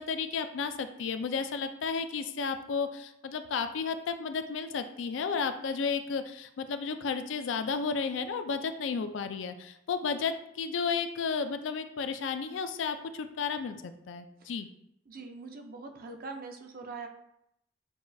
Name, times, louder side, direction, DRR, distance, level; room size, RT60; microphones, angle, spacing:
voice 1, 0.0-14.7, left 5 dB, 80° left, 9 dB, 0.4 m, -33 dB
voice 2, 15.1-17.1, right 3 dB, 50° right, 5 dB, 0.5 m, -42 dB
6.9 x 2.3 x 2.6 m, 0.79 s
head